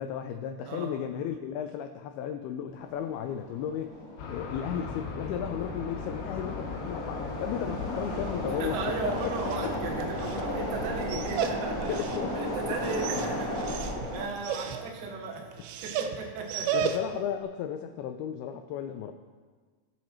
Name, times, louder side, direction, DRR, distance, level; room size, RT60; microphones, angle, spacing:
voice 1, 0.0-3.9 4.3-8.8 9.0-9.1 9.6-9.7 11.1-11.2 11.8-12.5 14.0-14.1 16.7-19.1, left 9 dB, 90° left, 6 dB, 2.2 m, -34 dB
sound 1, 2.7-14.2, equal, 15° left, 2.5 m, -35 dB
sound 2, 4.2-11.3, left 5 dB, 75° left, 2.8 m, -39 dB
voice 2, 8.4-11.9 12.3-16.8, right 4 dB, 65° right, 0 dB, 2.8 m, -36 dB
Dog, 9.1-17.3, right 7 dB, 85° right, 3.0 m, -35 dB
21.5 x 7.2 x 3.0 m, 1.5 s
omnidirectional pair, 5.0 m